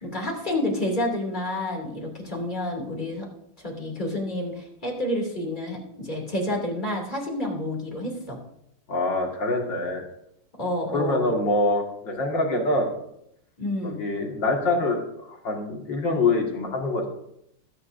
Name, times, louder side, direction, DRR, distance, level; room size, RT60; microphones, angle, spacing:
voice 1, 0.0-3.3 3.6-8.4 10.6-11.3 13.6-14.0, left 1 dB, 20° left, -1 dB, 2.7 m, -29 dB
voice 2, 8.9-10.0 10.9-13.0 13.8-17.1, left 2 dB, 60° left, 1 dB, 2.6 m, -25 dB
21.0 x 9.7 x 2.6 m, 0.77 s
omnidirectional pair, 2.3 m